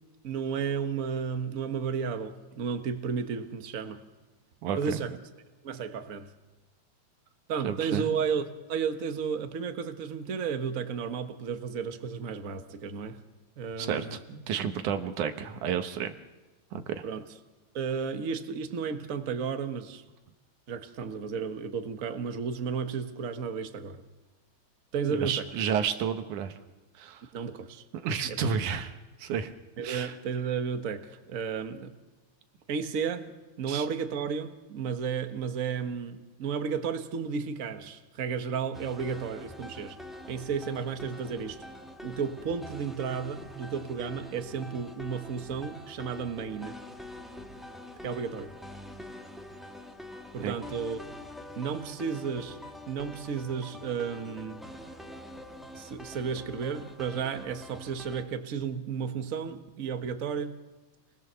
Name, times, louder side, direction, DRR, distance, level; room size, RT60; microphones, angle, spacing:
voice 1, 0.2-4.0 4.7-5.2 5.6-6.3 7.5-13.2 13.6-14.2 17.0-17.2 17.7-20.0 20.7-24.0 24.9-25.5 27.3-27.8 28.3-28.4 29.8-31.9 32.7-40.0 40.3-41.6 42.0-46.8 48.0-48.5 50.3-51.0 51.5-52.6 52.9-54.6 55.7-60.6, right 6 dB, 50° right, 1.0 m, -33 dB
voice 2, 4.6-5.0 7.6-8.1 13.8-16.1 16.7-17.0 25.1-26.6 27.0-27.2 28.0-28.9 29.2-29.5 29.8-30.1 33.7-33.9 50.4-50.5, right 7 dB, 90° right, 2.7 m, -31 dB
sound 1, 38.7-58.2, left 1 dB, ahead, 0.6 m, -45 dB
28.5 x 20.0 x 6.9 m
omnidirectional pair, 3.4 m